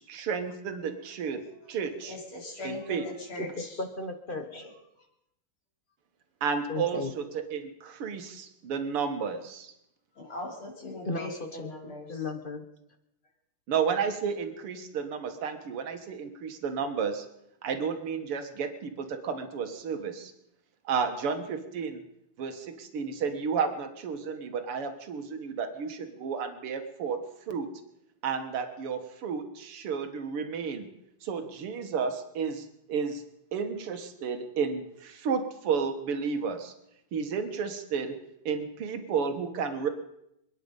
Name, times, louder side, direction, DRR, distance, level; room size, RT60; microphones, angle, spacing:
voice 1, 0.0-1.4 1.7-2.2 2.6-3.1 6.4-9.7 13.7-17.3 17.6-20.3 20.8-22.0 22.4-27.2 27.5-27.7 28.2-30.9 31.2-33.2 33.5-36.7 37.1-38.2 38.5-39.9, right 6 dB, 90° right, 7 dB, 2.4 m, -32 dB
voice 2, 2.0-3.7 4.3-4.7 10.2-12.1, left 1 dB, 70° left, 0 dB, 4.5 m, -40 dB
voice 3, 3.6-4.7 6.7-7.1 11.0-12.6, left 3 dB, 35° left, 8 dB, 1.0 m, -35 dB
27.0 x 10.0 x 5.4 m, 0.79 s
omnidirectional pair, 2.4 m